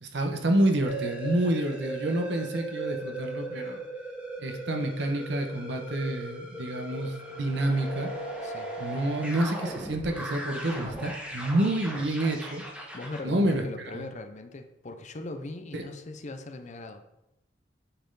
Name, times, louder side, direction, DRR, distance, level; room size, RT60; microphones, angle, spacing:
voice 1, 0.0-3.8 4.4-8.1 8.8-12.6 13.2-13.6 13.9-14.1 15.7-15.8, right 1 dB, 70° right, 4 dB, 1.0 m, -28 dB
sound 1, 0.8-13.2, right 1 dB, 5° right, 1.4 m, -38 dB
voice 2, 8.4-8.7 12.9-17.1, left 2 dB, 40° left, 7 dB, 0.6 m, -40 dB
7.9 x 4.4 x 3.9 m, 0.87 s
head